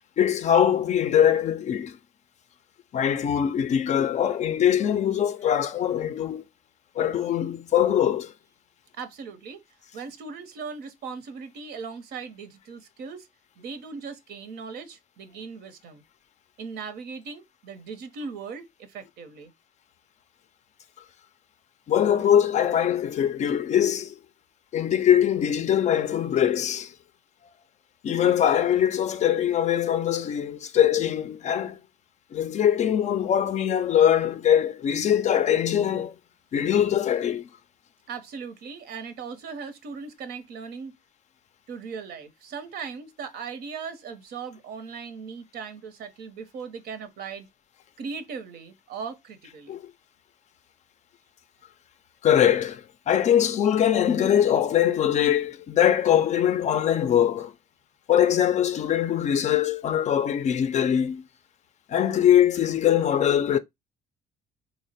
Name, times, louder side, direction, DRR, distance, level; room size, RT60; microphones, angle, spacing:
voice 1, 0.2-2.0 2.9-6.5 7.0-8.3 21.9-24.1 24.7-26.9 28.0-31.8 32.3-36.1 36.5-37.5 49.7-49.8 52.2-57.5 58.1-61.2 61.9-63.6, left 10 dB, 45° left, 0.4 m, -22 dB
voice 2, 9.0-9.6 9.9-13.3 13.6-16.0 16.6-19.5 38.1-40.9 41.7-47.5 48.0-49.8, right 5 dB, 70° right, 0.7 m, -38 dB
3.1 x 2.0 x 4.0 m
cardioid pair, 110°, 17 cm